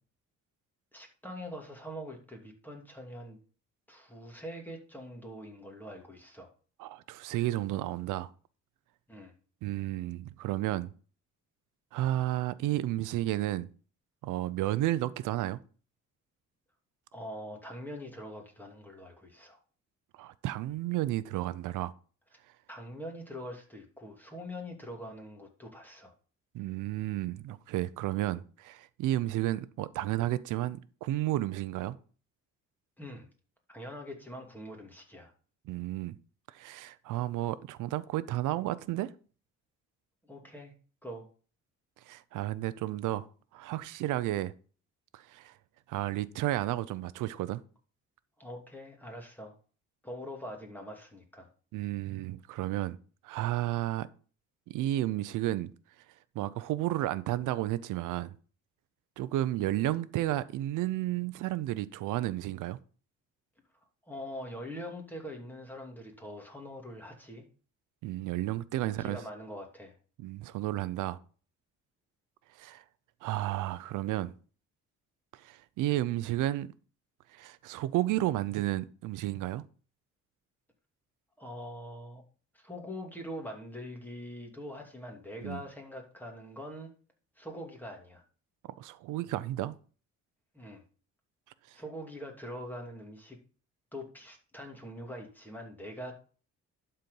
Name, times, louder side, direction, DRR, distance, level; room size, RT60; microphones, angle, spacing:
voice 1, 0.9-3.4 3.9-6.5 9.1-9.3 17.1-19.6 22.7-26.1 33.0-33.3 33.7-35.3 40.3-40.7 41.0-41.3 48.4-49.5 50.0-51.5 64.0-67.4 68.8-69.9 81.4-82.2 82.5-86.9 87.4-88.2 90.5-90.8 91.7-93.4 93.9-96.1, equal, 5° left, 2.7 m, -43 dB
voice 2, 6.8-8.3 9.6-10.9 11.9-13.7 14.2-15.6 20.2-21.9 26.5-32.0 35.7-36.2 36.5-39.1 42.1-43.3 43.5-44.5 45.1-45.5 45.9-47.6 51.7-53.0 53.2-54.1 54.7-55.7 56.3-58.3 59.2-62.8 68.0-69.2 70.2-71.2 72.6-72.8 73.2-74.3 75.3-76.7 77.3-79.6 85.4-85.6 88.8-89.7, right 15 dB, 90° right, 0.6 m, -32 dB
11.5 x 4.5 x 5.3 m
cardioid pair, 90°, 30 cm